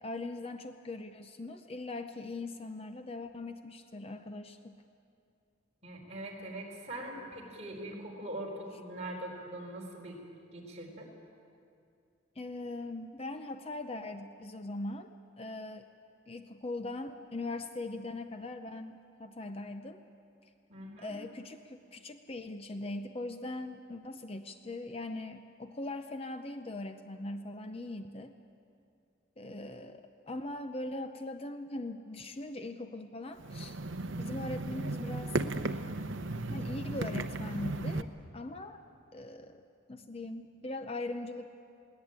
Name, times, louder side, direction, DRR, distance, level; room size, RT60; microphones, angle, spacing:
voice 1, 0.0-4.7 12.4-15.9 16.3-20.0 21.0-28.3 29.4-33.8 34.2-35.4 36.5-38.1 38.3-38.8 39.1-39.6 39.9-41.5, left 2 dB, 30° left, 8 dB, 0.7 m, -40 dB
voice 2, 5.8-10.2 10.5-11.1 20.7-21.2, right 1 dB, 35° right, -2 dB, 4.2 m, -42 dB
sound 1, 33.4-38.0, right 2 dB, 70° right, 0.8 m, -35 dB
21.5 x 17.5 x 8.9 m, 2.5 s
head